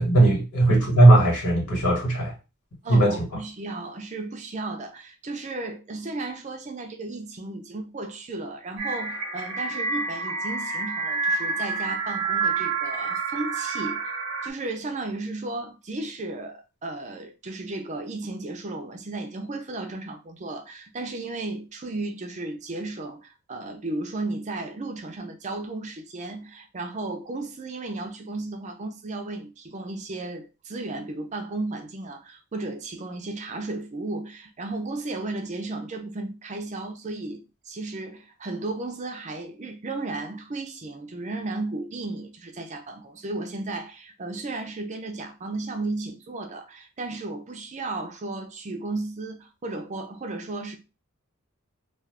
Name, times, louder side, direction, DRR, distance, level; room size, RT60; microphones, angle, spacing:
voice 1, 0.0-2.3 2.9-3.2, right 2 dB, 85° left, 1.5 m, -18 dB
voice 2, 2.8-50.8, right 2 dB, 35° right, 0.5 m, -34 dB
sound 1, 8.8-14.5, right 4 dB, 75° right, 0.6 m, -28 dB
2.4 x 2.3 x 3.4 m
head